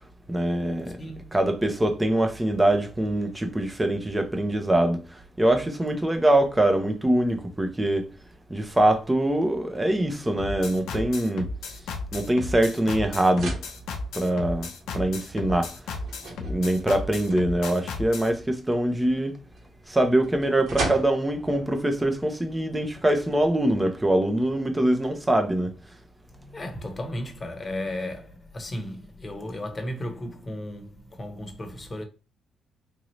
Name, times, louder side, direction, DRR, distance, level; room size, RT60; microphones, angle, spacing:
voice 1, 0.3-1.0 1.3-5.0 5.4-8.1 8.5-11.5 12.1-13.6 14.1-14.7 14.9-15.7 16.4-19.3 19.9-25.7, right 1 dB, 15° right, 0.8 m, -23 dB
voice 2, 1.0-1.3 20.4-20.5 26.4-32.0, left 1 dB, 25° left, 1.1 m, -35 dB
sound 1, 10.4-18.3, left 4 dB, 85° left, 0.7 m, -34 dB
sound 2, 10.6-23.5, right 2 dB, 65° right, 1.5 m, -40 dB
3.8 x 2.8 x 3.1 m
cardioid pair, 90°, 0 cm